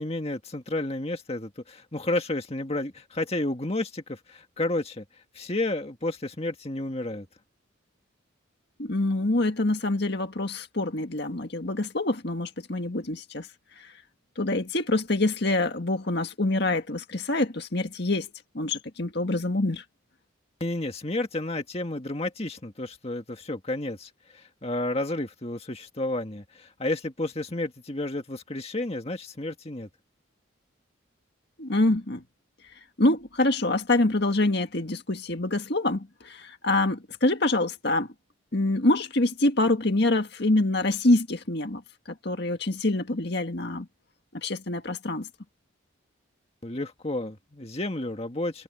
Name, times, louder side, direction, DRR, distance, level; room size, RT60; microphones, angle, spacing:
voice 1, 0.0-5.0 5.4-7.3 20.6-29.9 46.6-48.6, left 2 dB, 30° left, 1.9 m, -31 dB
voice 2, 8.8-13.5 13.8-13.9 14.4-19.8 31.6-32.2 33.0-38.1 38.5-41.8 42.2-43.9 44.3-45.3, left 2 dB, 55° left, 1.9 m, -25 dB
head